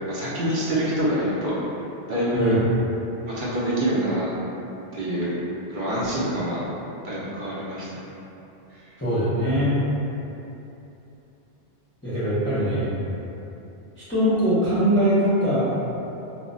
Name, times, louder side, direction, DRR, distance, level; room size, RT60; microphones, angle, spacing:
voice 1, 0.1-1.5 2.1-2.6 3.3-4.3 4.9-5.3 5.7-6.7 7.0-8.0 8.7-8.8, right 1 dB, 55° right, -8 dB, 0.6 m, -25 dB
voice 2, 9.0-9.7 12.0-13.0 14.1-15.7, equal, 15° left, -13 dB, 0.4 m, -22 dB
2.1 x 2.1 x 3.7 m, 3.0 s
omnidirectional pair, 1.1 m